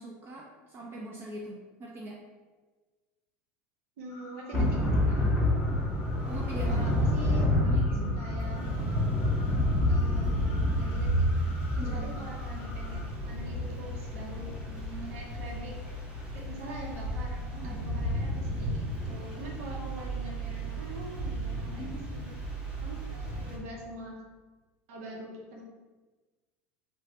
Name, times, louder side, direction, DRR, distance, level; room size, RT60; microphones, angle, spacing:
voice 1, 0.0-2.2 5.1-5.4 6.3-6.9 7.5-8.2 11.8-12.6 14.7-15.2 17.6-17.8 21.8-22.0, right 2 dB, 30° right, -2 dB, 0.4 m, -42 dB
voice 2, 4.0-4.8 6.7-9.3 9.9-11.3 11.7-14.5 15.1-15.9 16.3-22.3 22.8-24.2 24.9-25.6, right 1 dB, 80° right, -1 dB, 0.7 m, -44 dB
sound 1, 4.1-13.1, left 2 dB, 65° left, 0.7 m, -49 dB
Thunder / Rain, 4.5-23.6, left 1 dB, 10° right, 0.9 m, -30 dB
3.0 x 2.1 x 2.9 m, 1.3 s
supercardioid pair, 105°, 7 cm